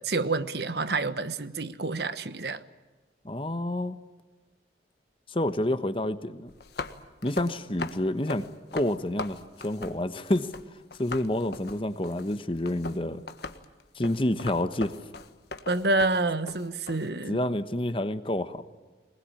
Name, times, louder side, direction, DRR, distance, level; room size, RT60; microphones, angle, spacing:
voice 1, 0.0-2.6 15.7-17.4, right 2 dB, 70° right, 12 dB, 1.2 m, -28 dB
voice 2, 3.2-4.0 5.3-6.5 7.2-10.5 11.0-13.2 13.9-14.9 17.3-18.6, left 1 dB, 30° left, 11 dB, 1.1 m, -28 dB
sound 1, 6.5-10.6 10.9-17.1, left 3 dB, 70° left, 1.5 m, -39 dB
23.0 x 21.0 x 8.7 m, 1.3 s
head